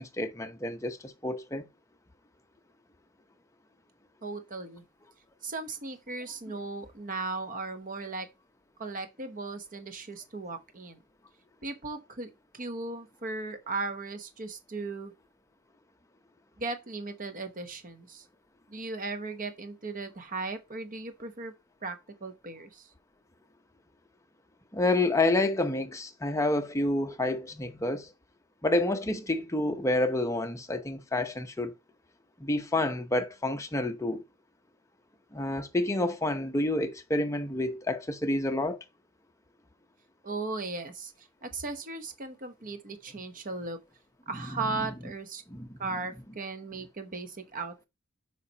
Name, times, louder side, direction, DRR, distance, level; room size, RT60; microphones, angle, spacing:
voice 1, 0.0-1.7 24.7-28.1 28.6-31.7 32.4-34.2 35.3-38.8 45.5-45.7, left 2 dB, 15° left, 0.7 m, -29 dB
voice 2, 4.2-4.8 5.4-8.3 8.8-11.0 11.6-15.1 16.6-18.2 18.7-21.5 21.8-22.0 22.2-22.9 40.2-43.8 44.3-45.4 45.8-47.9, right 3 dB, 40° right, 1.0 m, -37 dB
7.0 x 4.9 x 2.9 m
head